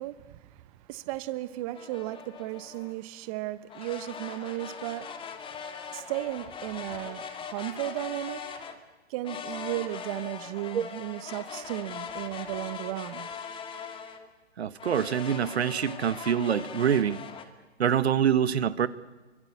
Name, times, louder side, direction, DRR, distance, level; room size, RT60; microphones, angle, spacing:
voice 1, 0.0-8.5 9.1-13.3, right 16 dB, 30° right, 1.0 m, -35 dB
sound 1, 1.7-2.9 3.7-8.8 9.2-14.3 14.8-17.4, left 6 dB, 15° left, 2.2 m, -40 dB
voice 2, 14.6-17.2 17.8-18.9, right 8 dB, 70° right, 1.4 m, -25 dB
26.5 x 24.5 x 8.3 m
hypercardioid pair, 130°, 34 cm